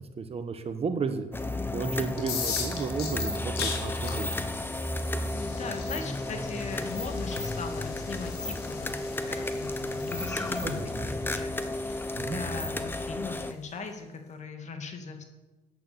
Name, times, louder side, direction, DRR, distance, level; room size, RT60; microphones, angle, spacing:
voice 1, 0.2-4.4 10.6-11.1 12.2-12.4, right 5 dB, 35° right, 8 dB, 1.2 m, -33 dB
sound 1, 1.3-13.5, left 2 dB, 10° left, 0.9 m, -33 dB
sound 2, 2.1-13.9, left 6 dB, 70° left, 3.3 m, -40 dB
voice 2, 5.3-10.8 11.0-15.2, left 4 dB, 45° left, 5 dB, 2.2 m, -39 dB
12.0 x 9.2 x 7.0 m, 1.2 s
cardioid pair, 110°, 17 cm